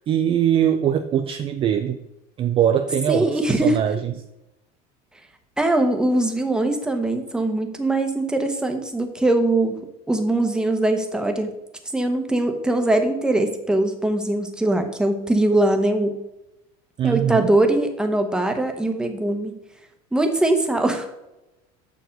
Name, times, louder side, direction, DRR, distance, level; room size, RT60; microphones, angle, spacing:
voice 1, 0.1-2.0 2.4-4.1 17.0-17.5, right 9 dB, 25° right, 8 dB, 0.4 m, -21 dB
voice 2, 3.1-3.8 5.6-9.8 10.1-11.5 11.9-16.2 17.0-19.5 20.1-21.1, right 2 dB, 5° right, 5 dB, 1.0 m, -21 dB
7.0 x 6.3 x 5.2 m, 0.92 s
cardioid pair, 145°, 20 cm